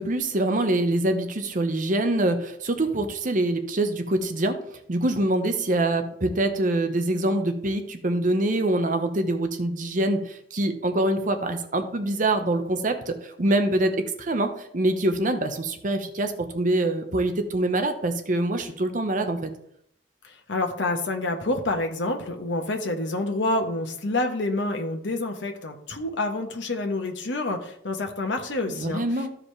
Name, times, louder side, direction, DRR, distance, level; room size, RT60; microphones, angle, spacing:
voice 1, 0.0-4.6 4.9-19.5 28.7-29.3, right 1 dB, 45° right, 7 dB, 0.9 m, -25 dB
voice 2, 20.2-29.0, left 2 dB, 85° left, 3 dB, 1.1 m, -28 dB
14.0 x 4.9 x 3.3 m, 0.70 s
head